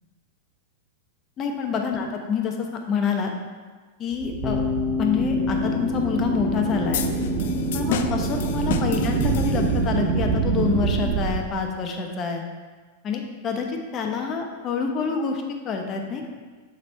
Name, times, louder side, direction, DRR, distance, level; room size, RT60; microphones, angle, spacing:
voice 1, 1.4-3.3 4.0-4.6 5.0-7.1 7.7-12.4 13.0-16.3, left 5 dB, 30° left, 3 dB, 0.8 m, -27 dB
sound 1, 4.1-11.4, right 5 dB, 50° right, 1.5 m, -26 dB
Bass guitar, 4.4-10.7, left 6 dB, 5° left, 0.5 m, -30 dB
sound 2, 6.9-10.0, left 9 dB, 70° left, 0.4 m, -32 dB
6.3 x 3.6 x 4.2 m, 1.4 s
hypercardioid pair, 125°, 0 cm